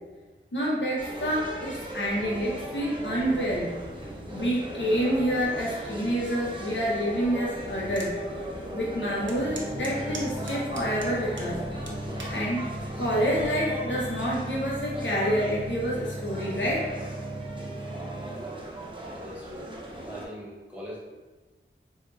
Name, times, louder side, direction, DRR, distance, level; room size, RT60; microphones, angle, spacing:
voice 1, 0.5-3.7 4.3-8.1 8.7-11.6 12.3-12.6 13.0-16.9, equal, 60° left, -5 dB, 0.8 m, -28 dB
sound 1, 1.0-20.2, right 1 dB, 25° right, 0.7 m, -38 dB
sound 2, 7.9-8.1 8.6-8.7 9.3-11.5 11.9-12.4 13.1-13.4, right 2 dB, 65° right, 0.6 m, -41 dB
sound 3, 9.4-18.6, right 1 dB, 15° left, 0.7 m, -37 dB
voice 2, 19.0-19.7 20.1-21.0, equal, 5° right, -8 dB, 1.2 m, -42 dB
4.3 x 2.4 x 2.4 m, 1.3 s
wide cardioid pair, 45°, 21 cm